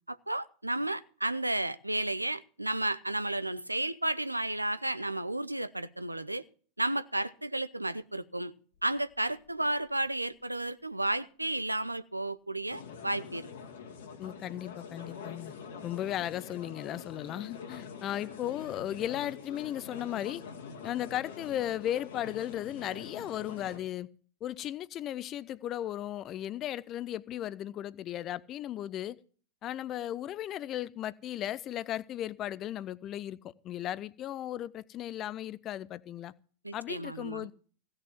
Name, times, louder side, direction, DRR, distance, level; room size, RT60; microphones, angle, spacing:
voice 1, 0.1-6.4 6.8-8.5 8.8-13.5 36.6-37.5, right 1 dB, 90° right, 0.5 m, -32 dB
sound 1, 8.7-8.8 9.1-9.2 9.5-9.6 12.7-23.8, left 6 dB, 65° left, 2.1 m, -45 dB
voice 2, 14.2-15.5 15.8-20.4 20.8-24.1 24.4-29.2 29.6-36.3 36.7-37.5, left 12 dB, 35° left, 0.6 m, -36 dB
16.0 x 6.5 x 7.3 m
figure-of-eight pair, 90°, 0 cm